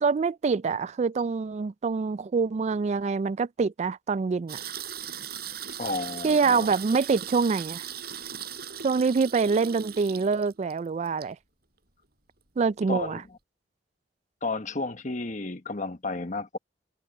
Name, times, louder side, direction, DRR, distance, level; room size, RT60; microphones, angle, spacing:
voice 1, 0.0-4.6 6.2-7.9 8.8-11.4 12.6-13.2, right 4 dB, 40° right, 0.3 m, -25 dB
sound 1, 4.5-10.8 11.1-11.2, right 9 dB, 60° right, 6.8 m, -38 dB
voice 2, 5.8-6.7 12.9-13.2 14.4-16.6, left 3 dB, 45° left, 1.3 m, -32 dB
head